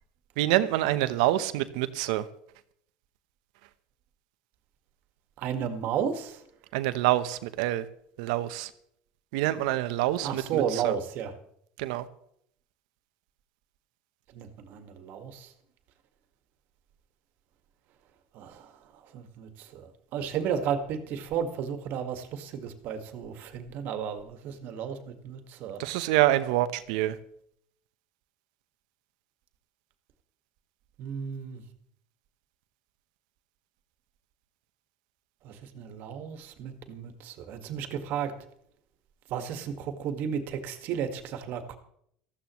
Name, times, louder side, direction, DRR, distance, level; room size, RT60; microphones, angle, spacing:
voice 1, 0.4-2.2 6.7-7.9 8.2-8.7 9.3-10.9 11.8-12.1 25.8-27.2, right 15 dB, 75° right, 13 dB, 1.0 m, -26 dB
voice 2, 5.4-6.3 10.2-11.3 14.4-15.5 18.4-18.5 19.1-19.8 20.1-25.8 31.0-31.6 35.5-38.3 39.3-41.8, right 8 dB, 60° right, 7 dB, 1.8 m, -33 dB
19.0 x 14.5 x 3.2 m, 0.70 s
supercardioid pair, 100°, 4 cm